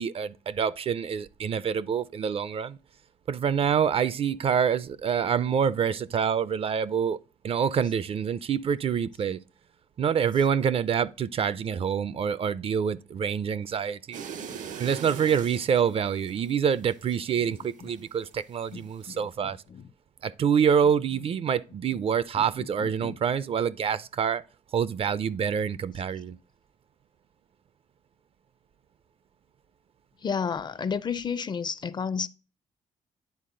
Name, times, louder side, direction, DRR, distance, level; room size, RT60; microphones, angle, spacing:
voice 1, 0.0-2.8 3.3-7.2 7.4-9.4 10.0-14.3 14.8-19.6 20.2-24.4 24.7-26.4, right 7 dB, 45° right, 0.4 m, -26 dB
sound 1, 14.1-18.3 18.6-19.2, right 7 dB, 75° right, 0.8 m, -41 dB
voice 2, 18.7-19.8 22.6-23.2 30.2-32.3, left 6 dB, 35° left, 0.4 m, -32 dB
9.5 x 4.0 x 3.7 m
cardioid pair, 115°, 13 cm